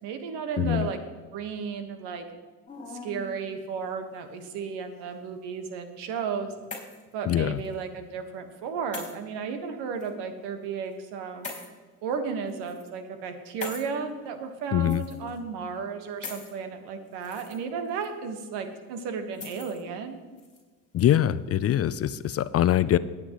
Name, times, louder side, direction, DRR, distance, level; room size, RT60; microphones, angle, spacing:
voice 1, 0.0-1.0 1.3-2.2 2.9-6.5 7.1-11.5 12.0-20.2, right 6 dB, 75° right, 7 dB, 1.6 m, -34 dB
voice 2, 0.6-0.9 7.3-7.6 14.7-15.0 20.9-23.0, left 11 dB, 35° left, 16 dB, 0.5 m, -23 dB
sound 1, 2.7-3.3 4.2-4.9 6.2-7.1 7.6-7.7 8.9-9.1 10.0-10.1 11.4-11.7 12.5-12.8 13.6-13.9 14.8-15.4 16.2-16.5 17.1-17.6 18.0-18.1 19.3-19.8 20.4-20.6, left 3 dB, 15° left, 4.0 m, -41 dB
19.5 x 8.6 x 3.1 m, 1.4 s
supercardioid pair, 75°, 41 cm